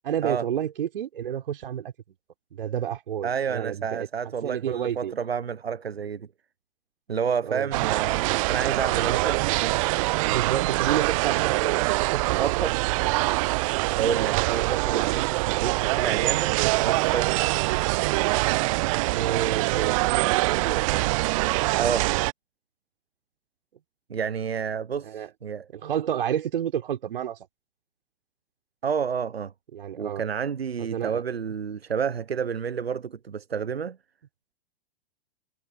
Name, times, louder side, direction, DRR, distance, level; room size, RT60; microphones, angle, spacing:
voice 1, 0.0-1.9 2.5-4.1 4.4-5.1 7.4-7.7 10.2-12.4 14.9-15.1 19.1-21.1 25.0-25.3 25.7-27.4 29.7-30.2 30.8-31.2, right 9 dB, 60° right, 4.7 m, -30 dB
voice 2, 3.2-6.3 7.1-9.8 12.4-12.8 13.4-13.6 13.9-17.4 21.8-22.1 24.1-25.7 28.8-29.5 29.9-34.0, right 7 dB, 80° right, 0.8 m, -30 dB
sound 1, 7.7-22.3, right 23 dB, 35° right, 0.5 m, -24 dB
figure-of-eight pair, 100°, 30 cm